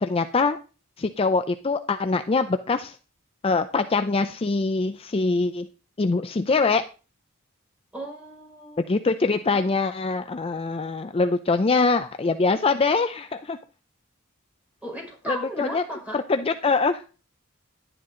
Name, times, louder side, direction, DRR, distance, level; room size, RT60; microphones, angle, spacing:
voice 1, 0.0-0.6 1.0-3.0 3.4-5.7 6.0-6.8 8.9-13.6 15.3-15.8 16.1-17.0, left 4 dB, 30° left, 9 dB, 0.5 m, -23 dB
voice 2, 7.9-9.0 14.8-16.2, equal, 5° right, -1 dB, 5.5 m, -35 dB
11.5 x 10.0 x 3.8 m, 0.34 s
head